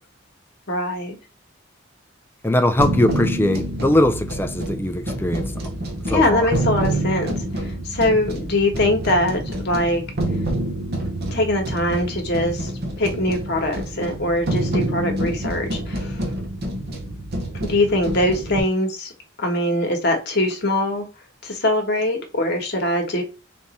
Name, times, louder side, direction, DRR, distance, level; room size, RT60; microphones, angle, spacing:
voice 1, 0.7-1.2 6.0-7.4 7.6-10.0 11.3-12.7 13.0-16.2 17.6-19.1 19.4-21.1 21.4-23.2, left 1 dB, 55° left, 1.2 m, -22 dB
voice 2, 2.4-5.4 6.1-6.5, left 1 dB, 10° left, 0.4 m, -20 dB
sound 1, 2.8-18.6, right 1 dB, 50° right, 0.8 m, -27 dB
3.5 x 2.6 x 4.1 m
head